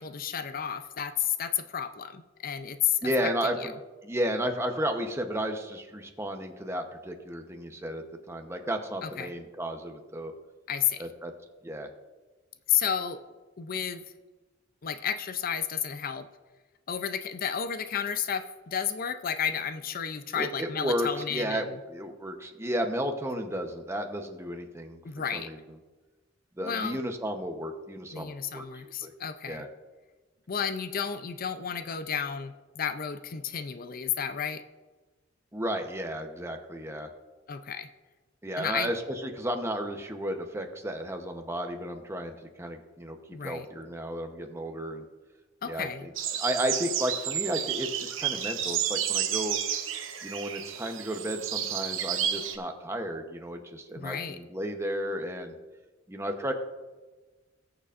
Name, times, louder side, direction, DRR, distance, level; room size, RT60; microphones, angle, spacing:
voice 1, 0.0-3.1 3.6-3.7 9.0-9.3 10.7-11.0 12.7-13.2 13.6-14.0 14.8-16.3 16.9-21.8 25.0-25.5 26.6-27.0 28.1-29.7 30.5-34.6 37.5-37.9 38.6-38.9 43.3-43.7 45.6-46.1 54.0-54.4, left 8 dB, 50° left, 10 dB, 0.5 m, -32 dB
voice 2, 3.0-3.7 4.0-10.3 11.0-11.3 11.6-11.9 20.3-25.0 25.3-25.6 26.6-28.6 29.0-29.1 29.5-29.7 35.5-37.1 38.4-45.0 45.6-49.6 50.2-55.5 56.1-56.5, equal, 15° right, 4 dB, 0.9 m, -33 dB
sound 1, 46.2-52.6, right 9 dB, 90° right, 0.9 m, -31 dB
20.0 x 6.8 x 2.5 m, 1.3 s
head